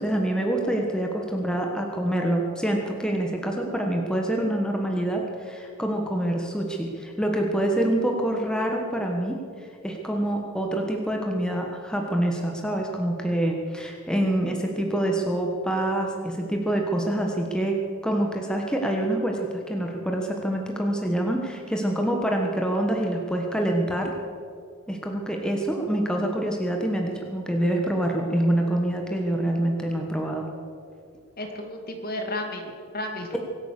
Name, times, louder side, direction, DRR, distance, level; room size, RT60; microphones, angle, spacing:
voice 1, 0.0-9.4 9.8-17.8 18.0-24.1 24.9-30.5, right 1 dB, 5° left, 1 dB, 1.3 m, -26 dB
voice 2, 31.4-33.4, left 1 dB, 45° left, 3 dB, 2.4 m, -33 dB
23.5 x 8.9 x 6.7 m, 2.4 s
head